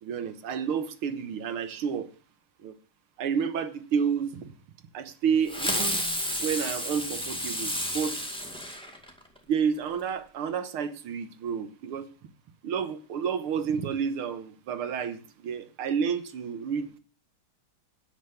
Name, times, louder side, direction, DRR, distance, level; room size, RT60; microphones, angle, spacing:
voice 1, 0.0-2.1 2.6-2.8 3.2-4.5 4.9-6.0 6.4-8.2 9.5-12.1 12.6-17.0, right 7 dB, 85° right, 2.1 m, -30 dB
Fireworks, 5.5-9.4, equal, 5° left, 2.0 m, -31 dB
10.0 x 7.4 x 6.8 m
omnidirectional pair, 2.3 m